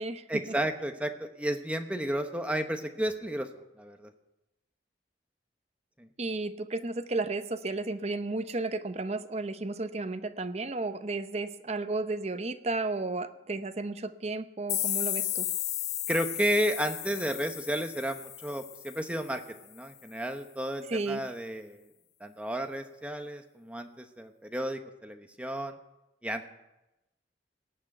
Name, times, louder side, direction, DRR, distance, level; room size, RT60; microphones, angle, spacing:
voice 1, 0.3-3.5 3.8-4.1 6.0-6.1 16.1-21.8 22.2-25.8 26.2-26.4, equal, 5° right, 6 dB, 0.9 m, -32 dB
voice 2, 6.2-15.5 20.9-21.2, right 2 dB, 35° right, 10 dB, 0.7 m, -33 dB
sound 1, 14.7-19.4, left 12 dB, 65° left, 0.9 m, -34 dB
18.0 x 6.2 x 9.0 m, 0.96 s
head